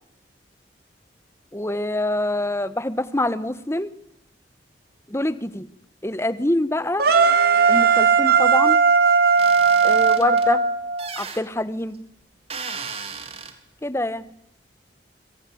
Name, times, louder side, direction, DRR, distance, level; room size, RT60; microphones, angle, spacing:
voice 1, 1.5-3.9 5.1-5.7 6.0-7.0 7.7-8.8 9.8-10.6 11.2-12.0 13.8-14.2, left 1 dB, 15° left, 14 dB, 1.3 m, -25 dB
sound 1, 7.0-11.1, right 5 dB, 55° right, 3.3 m, -17 dB
sound 2, 9.4-10.5 11.0-11.4 12.5-13.5, right 5 dB, 35° right, 3.3 m, -35 dB
26.0 x 25.5 x 8.7 m, 0.81 s
head